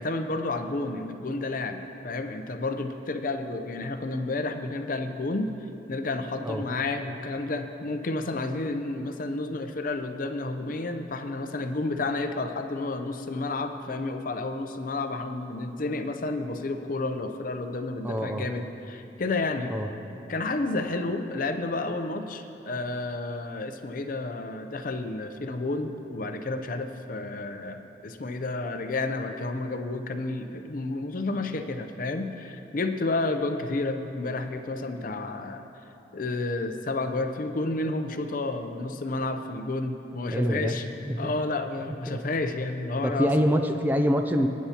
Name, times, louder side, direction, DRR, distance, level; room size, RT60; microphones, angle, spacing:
voice 1, 0.0-5.5 5.9-19.7 20.3-35.6 36.1-40.8 41.2-43.3, left 2 dB, 50° left, 7 dB, 0.6 m, -31 dB
voice 2, 18.0-18.5 19.7-19.9 40.3-40.8 41.0-41.3 42.1-42.2 43.0-44.5, equal, 10° right, 5 dB, 0.4 m, -25 dB
19.5 x 9.4 x 2.9 m, 2.8 s
head